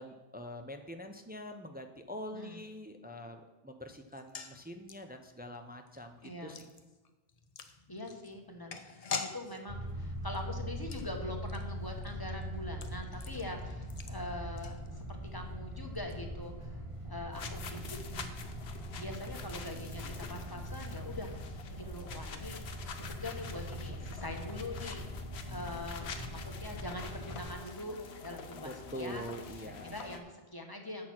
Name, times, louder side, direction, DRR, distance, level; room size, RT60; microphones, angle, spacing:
voice 1, 0.0-6.7 28.6-29.9, equal, 15° right, 6 dB, 0.4 m, -44 dB
sound 1, 4.1-15.3 15.6-15.7 15.9-16.1, left 5 dB, 45° left, 0.6 m, -46 dB
voice 2, 6.2-6.6 7.9-18.3 19.0-22.6 23.1-25.0 25.5-29.3 29.6-31.1, left 1 dB, 20° left, 3 dB, 1.0 m, -43 dB
sound 2, 9.7-27.6, equal, 30° right, 1.0 m, -42 dB
sound 3, 17.3-30.2, left 5 dB, 80° left, 1.0 m, -47 dB
7.5 x 6.5 x 5.9 m, 1.2 s
omnidirectional pair, 1.1 m